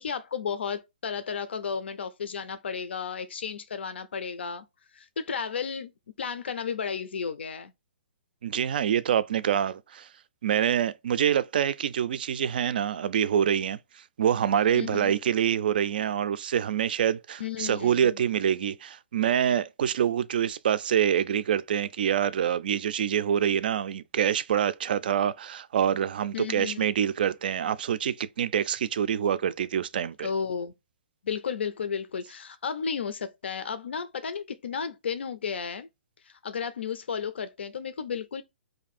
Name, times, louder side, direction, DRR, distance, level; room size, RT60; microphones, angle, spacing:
voice 1, 0.0-4.6 4.9-5.9 6.2-7.7 14.7-15.1 17.4-18.2 26.3-26.9 30.2-30.7 31.2-35.9 36.2-38.4, left 6 dB, 85° left, 0.5 m, -33 dB
voice 2, 8.4-10.1 10.4-13.8 14.2-30.3, right 9 dB, 55° right, 0.3 m, -26 dB
2.7 x 2.6 x 4.1 m
hypercardioid pair, 160°, 6 cm